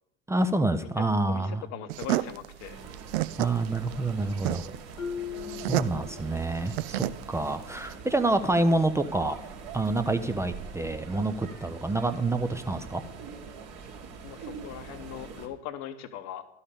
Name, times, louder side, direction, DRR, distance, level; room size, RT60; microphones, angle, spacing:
voice 1, 0.3-1.6 3.4-4.6 5.7-9.4 9.7-13.0, right 2 dB, 10° right, 9 dB, 0.5 m, -27 dB
voice 2, 1.3-2.8 14.2-16.4, left 10 dB, 50° left, 10 dB, 1.0 m, -40 dB
sound 1, 1.9-7.9, right 16 dB, 60° right, 0.5 m, -32 dB
sound 2, 2.6-15.5, right 5 dB, 45° right, 1.6 m, -44 dB
Marimba xylophone, 5.0-6.7, left 7 dB, 75° left, 1.0 m, -38 dB
12.0 x 5.5 x 6.7 m, 0.81 s
figure-of-eight pair, 70°, 36 cm